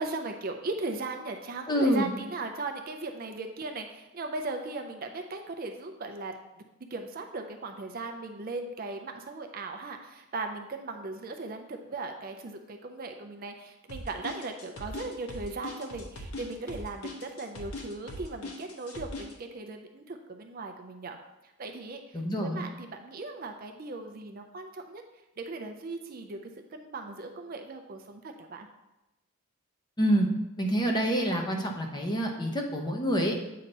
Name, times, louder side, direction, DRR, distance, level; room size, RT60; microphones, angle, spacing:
voice 1, 0.0-6.3 6.9-21.2 21.6-25.0 25.4-26.4 26.7-28.7, right 3 dB, 40° right, 5 dB, 0.4 m, -38 dB
voice 2, 1.7-2.1 22.1-22.6 30.0-30.3 30.6-33.4, equal, 20° left, 1 dB, 0.7 m, -27 dB
sound 1, 13.9-19.3, left 2 dB, 80° left, 1.0 m, -40 dB
8.2 x 2.9 x 5.2 m, 0.98 s
head